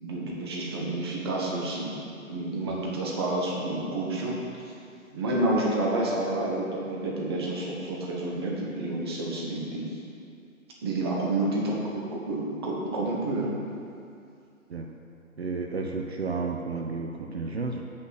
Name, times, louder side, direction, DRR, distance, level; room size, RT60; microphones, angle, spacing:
voice 1, 0.0-2.0 2.3-4.3 5.1-9.9 10.8-13.5, right 2 dB, 20° right, -3 dB, 0.8 m, -29 dB
voice 2, 15.4-17.8, right 4 dB, 50° right, 2 dB, 0.6 m, -32 dB
7.6 x 5.7 x 6.3 m, 2.5 s
figure-of-eight pair, 145°, 42 cm